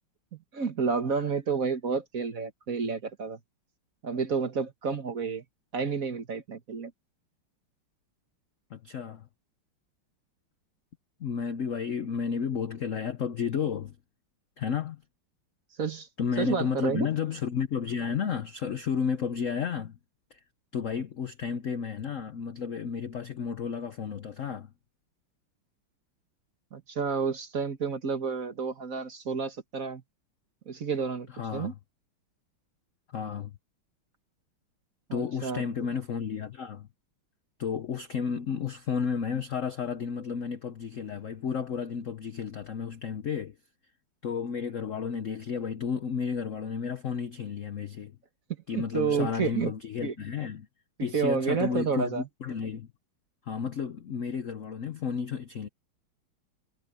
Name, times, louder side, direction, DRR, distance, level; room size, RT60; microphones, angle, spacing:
voice 1, 0.5-3.4 4.0-5.4 5.7-6.9 15.8-16.1 16.4-17.1 26.7-30.0 30.7-31.7 35.1-35.6 48.7-49.7 50.0-50.1 51.0-52.3, right 5 dB, 45° right, 1.6 m, -30 dB
voice 2, 8.7-9.3 11.2-14.0 14.6-15.0 16.2-20.0 20.3-20.4 20.7-24.7 31.3-31.8 33.1-33.5 35.1-36.9 37.6-43.6 44.2-48.2 48.7-50.7 51.0-52.9 53.5-55.7, left 6 dB, 65° left, 0.8 m, -32 dB
omnidirectional pair, 2.4 m